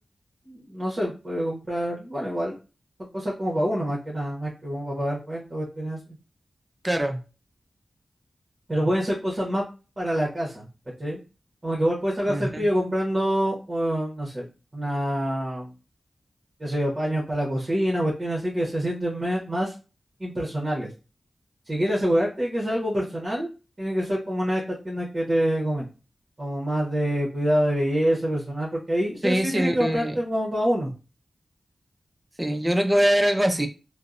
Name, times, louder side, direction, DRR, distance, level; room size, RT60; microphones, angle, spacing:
voice 1, 0.4-2.6 3.1-6.0 8.7-9.7 10.0-10.7 11.0-11.2 11.6-14.5 14.7-15.7 16.6-19.7 20.2-20.9 21.7-23.5 23.8-25.9 26.4-30.9, equal, 35° right, -4 dB, 0.9 m, -26 dB
voice 2, 6.8-7.2 12.3-12.6 29.2-30.2 32.4-33.7, equal, 15° right, 5 dB, 0.5 m, -23 dB
2.6 x 2.0 x 2.4 m, 0.33 s
cardioid pair, 55°, 0 cm